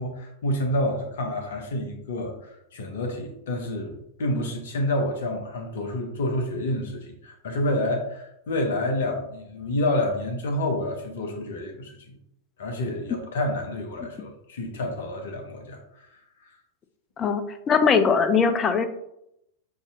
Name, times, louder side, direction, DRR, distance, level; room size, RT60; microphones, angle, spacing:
voice 1, 0.0-12.2 12.6-16.1, left 1 dB, 60° left, 3 dB, 0.8 m, -28 dB
voice 2, 17.2-18.9, left 5 dB, 25° left, 10 dB, 0.4 m, -21 dB
6.0 x 2.7 x 2.4 m, 0.80 s
figure-of-eight pair, 90°, 0 cm